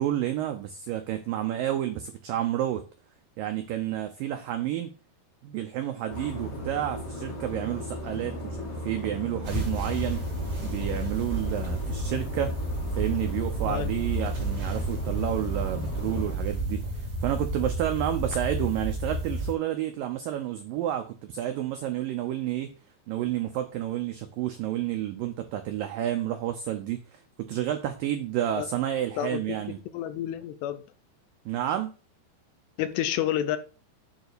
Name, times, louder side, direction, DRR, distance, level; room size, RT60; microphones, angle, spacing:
voice 1, 0.0-2.8 3.4-4.9 5.4-10.2 10.6-12.5 12.9-22.7 23.1-29.8 31.5-31.9, right 12 dB, 90° right, 1.9 m, -30 dB
sound 1, 6.1-16.4, left 1 dB, 40° left, 2.6 m, -38 dB
sound 2, 9.4-19.5, right 1 dB, 30° right, 3.2 m, -31 dB
voice 2, 29.2-29.6 29.9-30.8 32.8-33.6, left 11 dB, 80° left, 2.9 m, -29 dB
9.5 x 4.0 x 6.6 m
omnidirectional pair, 5.0 m